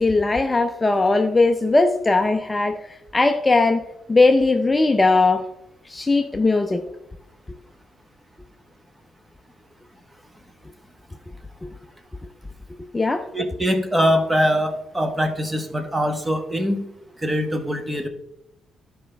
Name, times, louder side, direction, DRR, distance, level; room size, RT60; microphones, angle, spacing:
voice 1, 0.0-3.8 4.1-5.4 5.9-6.9 12.9-13.3, left 3 dB, 20° left, 6 dB, 0.5 m, -19 dB
voice 2, 13.3-16.8 17.2-18.1, equal, 15° right, 6 dB, 1.1 m, -22 dB
11.5 x 5.0 x 3.4 m, 0.85 s
cardioid pair, 90°, 0 cm